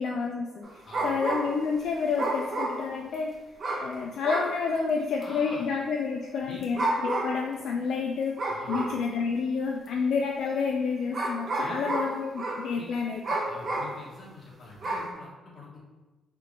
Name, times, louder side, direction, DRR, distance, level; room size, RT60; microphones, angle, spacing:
voice 1, 0.0-0.7 1.0-3.3 3.8-13.2, left 5 dB, 70° left, 0 dB, 0.3 m, -29 dB
sound 1, 0.6-1.7 2.2-3.1 3.6-3.9 4.2-4.6 5.2-5.3 6.6-7.4 8.4-9.1 9.9-10.0 11.1-12.7 13.2-14.0 14.8-15.1, right 2 dB, 50° right, 0.9 m, -30 dB
voice 2, 5.2-5.7 6.4-6.6 8.5-8.9 11.6-12.1 12.7-12.9 13.5-15.8, left 2 dB, 45° left, -3 dB, 1.2 m, -45 dB
3.4 x 2.9 x 3.7 m, 1.2 s
cardioid pair, 95°, 0 cm